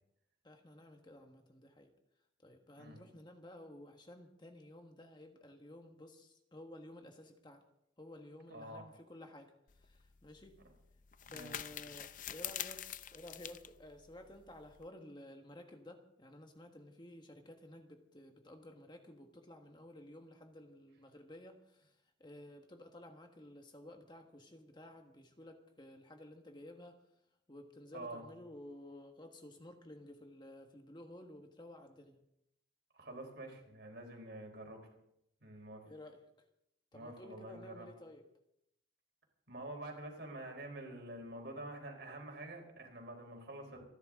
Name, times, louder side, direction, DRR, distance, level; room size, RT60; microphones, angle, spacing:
voice 1, 0.4-1.9 2.4-7.6 8.0-10.6 11.3-12.8 13.1-27.0 27.5-32.2 35.8-36.2 36.9-38.2, left 1 dB, 25° left, 4 dB, 1.4 m, -54 dB
voice 2, 8.5-8.8 11.3-11.5 27.9-28.2 32.9-34.8 35.4-35.8 36.9-37.9 39.5-43.8, right 1 dB, 60° right, 2 dB, 4.3 m, -47 dB
sound 1, 9.7-14.9, left 11 dB, 45° left, 0.6 m, -46 dB
27.5 x 11.5 x 3.7 m, 0.78 s
head